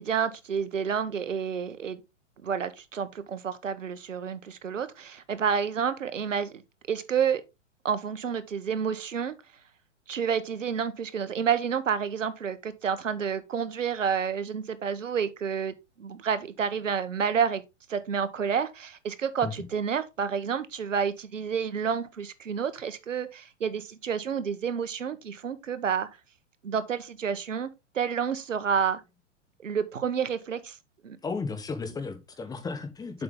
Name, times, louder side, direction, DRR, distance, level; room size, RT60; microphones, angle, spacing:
voice 1, 0.0-2.0 2.4-6.6 6.9-7.4 7.8-9.3 10.1-17.6 17.9-26.1 26.6-27.7 27.9-29.0 29.6-30.8 31.0-31.2, right 7 dB, 90° right, 1.2 m, -29 dB
voice 2, 31.2-33.2, left 4 dB, 10° left, 1.1 m, -34 dB
7.6 x 5.7 x 3.6 m
hypercardioid pair, 130°, 37 cm